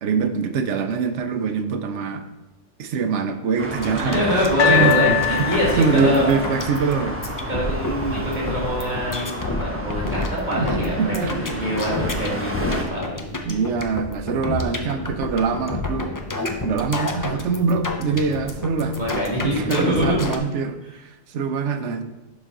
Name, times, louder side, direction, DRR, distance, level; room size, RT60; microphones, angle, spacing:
voice 1, 0.0-2.2 2.8-4.2 4.7-5.0 5.3-7.2 8.1-8.3 10.5-11.3 13.4-16.2 16.6-19.0 19.4-20.8 21.3-22.0, right 5 dB, 70° right, 8 dB, 0.9 m, -23 dB
Traffic noise roadway noise, 3.6-12.8, right 1 dB, 10° right, 1.0 m, -32 dB
sound 1, 3.8-20.4, left 2 dB, 30° left, 0.4 m, -30 dB
voice 2, 4.0-6.3 7.5-13.3 19.0-20.2, equal, 35° right, -6 dB, 2.1 m, -24 dB
sound 2, 4.6-7.8 8.5-8.6, left 11 dB, 75° left, 1.1 m, -25 dB
11.0 x 4.1 x 3.8 m, 1.0 s
omnidirectional pair, 1.3 m